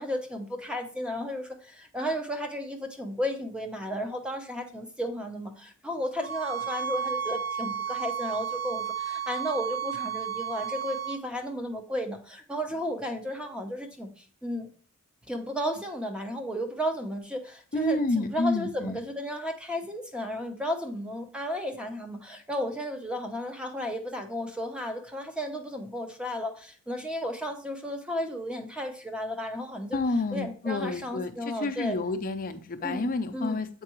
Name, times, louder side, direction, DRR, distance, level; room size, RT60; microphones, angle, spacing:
voice 1, 0.0-14.7 15.3-30.0 30.3-32.0 32.8-33.1 33.3-33.6, equal, 5° right, 4 dB, 0.8 m, -33 dB
sound 1, 6.2-11.2, right 8 dB, 75° right, 1.3 m, -32 dB
voice 2, 17.7-19.0 29.9-33.7, left 2 dB, 40° left, 8 dB, 0.5 m, -29 dB
7.4 x 4.6 x 3.0 m, 0.42 s
head